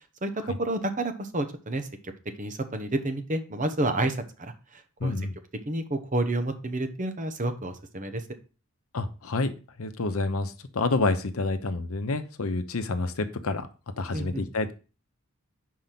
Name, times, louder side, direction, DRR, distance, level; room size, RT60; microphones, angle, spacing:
voice 1, 0.2-2.1 2.4-5.1 5.7-8.2 14.1-14.4, right 2 dB, 35° right, 8 dB, 0.9 m, -30 dB
voice 2, 5.0-5.4 8.9-13.7 14.0-14.7, left 3 dB, 80° left, 10 dB, 0.8 m, -28 dB
5.2 x 4.7 x 5.9 m, 0.35 s
head